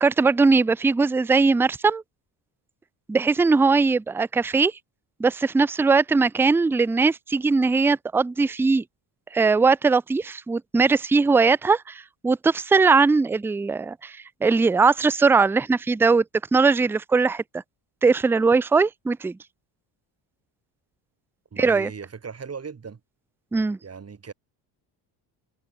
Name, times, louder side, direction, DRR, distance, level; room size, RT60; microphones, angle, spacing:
voice 1, 0.0-2.0 3.1-4.7 5.2-8.8 9.3-16.2 16.5-17.6 18.0-19.4 21.6-21.9 23.5-23.8, right 4 dB, 5° right, 0.4 m, -20 dB
voice 2, 21.5-23.0 23.8-24.3, right 6 dB, 30° right, 3.3 m, -38 dB
supercardioid pair, 80°, 48 cm